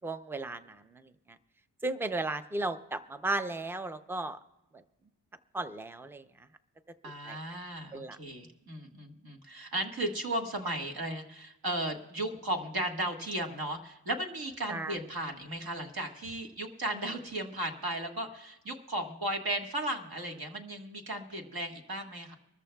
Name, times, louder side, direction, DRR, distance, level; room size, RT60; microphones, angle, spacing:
voice 1, 0.0-0.6 1.8-4.4 5.5-6.2 7.3-7.4 7.9-8.2 14.7-15.0, right 2 dB, 5° right, 11 dB, 0.5 m, -34 dB
voice 2, 7.0-22.3, right 1 dB, 60° right, 3 dB, 1.6 m, -35 dB
24.5 x 13.5 x 2.3 m, 0.97 s
wide cardioid pair, 105°, 42 cm